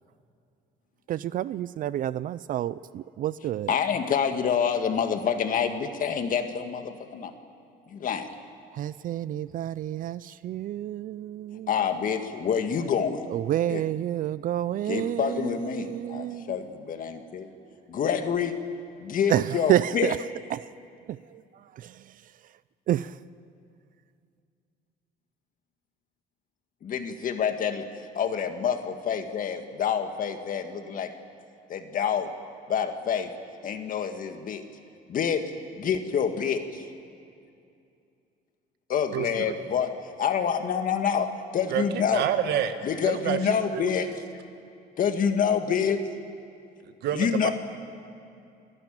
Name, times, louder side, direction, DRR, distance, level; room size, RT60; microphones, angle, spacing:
voice 1, 1.1-3.8 8.7-11.7 13.3-16.6 19.3-20.2 20.5-20.7 21.1-22.2 22.9-23.2, right 12 dB, 55° right, 17 dB, 0.4 m, -29 dB
voice 2, 3.7-7.3 7.9-8.3 11.7-13.3 13.7-13.8 14.9-17.5 17.9-18.5 19.0-20.1 26.8-27.8 28.1-31.1 31.7-32.3 32.7-33.3 33.6-34.6 35.1-35.4 35.8-36.9 38.9-39.9 40.2-41.3 41.5-42.3 42.8-44.1 45.0-46.0 47.2-47.5, left 7 dB, 55° left, 7 dB, 1.8 m, -27 dB
voice 3, 39.1-39.6 41.7-42.7 43.0-43.4 43.7-44.1 46.8-47.5, right 10 dB, 75° right, 9 dB, 1.5 m, -28 dB
29.5 x 12.0 x 8.9 m, 2.5 s
cardioid pair, 110°, 17 cm